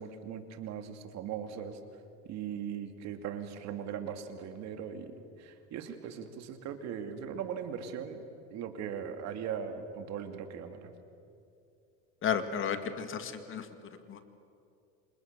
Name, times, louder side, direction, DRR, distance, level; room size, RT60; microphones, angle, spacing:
voice 1, 0.0-1.8 2.2-8.2 8.5-10.9, right 8 dB, 45° right, 7 dB, 2.6 m, -39 dB
voice 2, 12.2-13.7 14.1-14.2, left 7 dB, 35° left, 8 dB, 2.0 m, -33 dB
29.5 x 27.0 x 6.9 m, 2.5 s
supercardioid pair, 130°, 36 cm